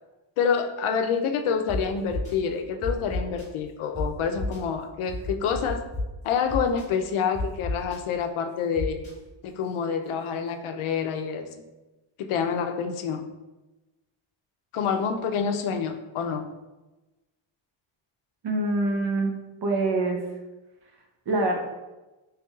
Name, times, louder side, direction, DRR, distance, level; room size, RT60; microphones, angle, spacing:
voice 1, 0.4-5.8 6.2-9.0 9.4-11.6 12.2-13.3 14.7-16.5, left 6 dB, 80° left, 6 dB, 0.5 m, -27 dB
sound 1, 1.7-1.8 2.1-2.3 2.8-3.4 3.9-4.0 4.4-4.6 5.1-6.0 6.5-6.8 7.3-8.0 8.8-9.1, left 2 dB, 15° left, 1.1 m, -30 dB
voice 2, 18.4-19.3 19.6-20.2 21.3-21.6, right 2 dB, 55° right, 2 dB, 0.6 m, -24 dB
4.5 x 3.3 x 2.3 m, 1.1 s
wide cardioid pair, 175°, 49 cm